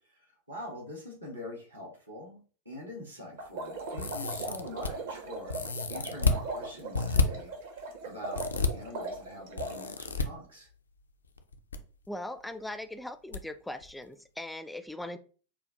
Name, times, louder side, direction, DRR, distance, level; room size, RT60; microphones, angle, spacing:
voice 1, 0.5-10.7, left 1 dB, 85° right, 0 dB, 1.5 m, -44 dB
sound 1, 3.4-9.9, right 3 dB, 55° right, 0.8 m, -39 dB
sound 2, 4.0-4.9 5.5-6.4 6.9-7.2 8.3-8.7 9.6-10.2 11.4-11.8 12.0-12.1 13.3-13.4 13.8-13.9, left 4 dB, 75° left, 0.4 m, -29 dB
voice 2, 12.1-15.2, left 1 dB, 5° left, 10 dB, 0.3 m, -40 dB
5.1 x 2.2 x 2.8 m, 0.40 s
figure-of-eight pair, 90°, 0 cm